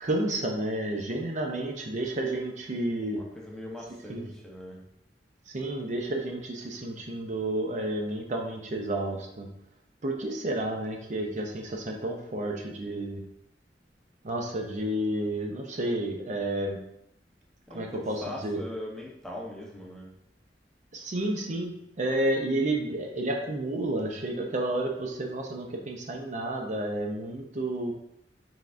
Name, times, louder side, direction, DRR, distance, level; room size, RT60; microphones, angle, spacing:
voice 1, 0.0-3.2 4.1-4.2 5.5-9.5 10.0-13.2 14.2-16.8 17.7-18.6 20.9-21.7 22.0-27.9, right 1 dB, 40° right, 1 dB, 0.6 m, -31 dB
voice 2, 3.1-4.8 17.7-20.1, left 1 dB, 5° left, -2 dB, 0.8 m, -40 dB
5.8 x 3.5 x 2.5 m, 0.79 s
head